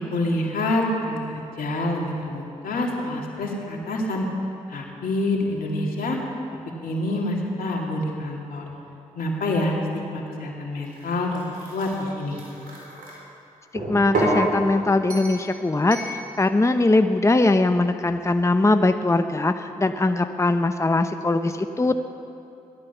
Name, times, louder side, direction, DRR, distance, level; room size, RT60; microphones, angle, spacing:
voice 1, 0.1-1.2 1.6-4.3 4.7-6.2 6.8-8.6 9.2-9.7 10.1-11.4 11.7-12.4, left 1 dB, 75° left, -1 dB, 2.7 m, -26 dB
sound 1, 10.9-13.1 13.8-14.4 15.1-15.4 15.9-16.1, right 1 dB, 80° right, 4.4 m, -29 dB
voice 2, 13.7-22.0, left 2 dB, 20° left, 8 dB, 0.8 m, -21 dB
17.0 x 12.0 x 7.1 m, 2.7 s
supercardioid pair, 40°, 15 cm